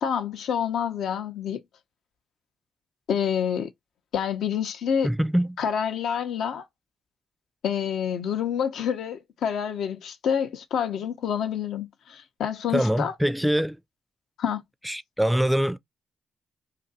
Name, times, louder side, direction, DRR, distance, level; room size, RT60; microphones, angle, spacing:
voice 1, 0.0-1.6 3.1-3.7 4.1-5.1 5.6-6.6 7.6-13.1 14.4-14.6, left 8 dB, 75° left, 0.7 m, -27 dB
voice 2, 5.0-5.5 12.7-13.8 14.8-15.8, equal, 5° right, 0.4 m, -23 dB
2.6 x 2.5 x 4.1 m
supercardioid pair, 50°, 0 cm